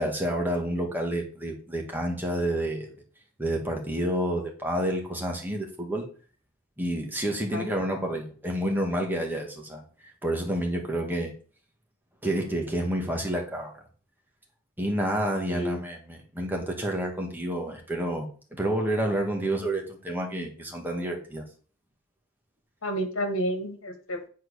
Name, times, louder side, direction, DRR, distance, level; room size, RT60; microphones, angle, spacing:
voice 1, 0.0-2.9 3.4-6.1 6.8-9.8 10.2-11.3 12.2-13.8 14.8-21.4, right 1 dB, 10° right, 1 dB, 1.9 m, -29 dB
voice 2, 22.8-24.3, equal, 70° left, 6 dB, 1.7 m, -30 dB
7.8 x 4.6 x 6.4 m, 0.41 s
head